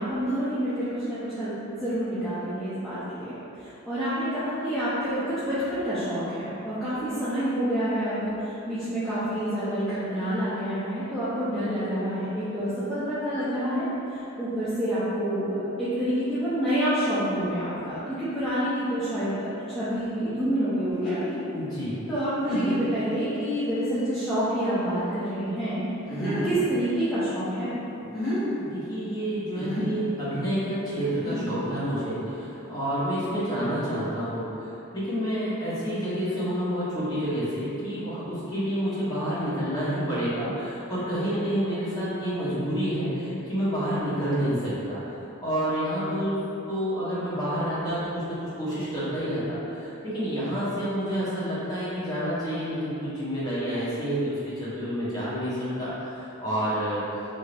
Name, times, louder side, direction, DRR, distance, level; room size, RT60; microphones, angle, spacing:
voice 1, 0.0-3.3 3.6-21.4 22.1-25.8 26.2-27.8, equal, ahead, -16 dB, 0.5 m, -28 dB
sound 1, 20.9-21.3 21.9-22.0 22.5-23.0 23.7-23.8 26.1-26.6 27.9-28.4 29.5-30.0 30.9-31.8, equal, 45° left, 1.0 m, -30 dB
voice 2, 21.5-22.0 28.5-45.0 45.4-46.4 46.6-57.0, equal, 20° left, -11 dB, 0.9 m, -29 dB
2.7 x 2.5 x 3.3 m, 2.9 s
head